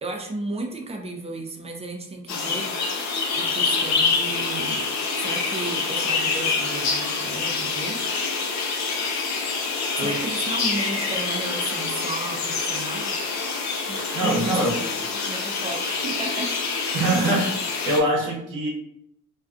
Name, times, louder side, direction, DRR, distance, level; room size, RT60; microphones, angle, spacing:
voice 1, 0.0-3.0 3.3-4.9 5.2-8.1 9.9-13.1 13.9-14.8 15.2-16.5 17.1-17.2, right 2 dB, 20° right, 2 dB, 0.5 m, -34 dB
sound 1, 2.3-18.0, left 4 dB, 65° left, 0.6 m, -26 dB
voice 2, 13.9-14.7 16.9-17.5 17.8-18.7, right 1 dB, 85° right, -2 dB, 0.8 m, -23 dB
2.5 x 2.3 x 2.3 m, 0.80 s
cardioid pair, 90°, 30 cm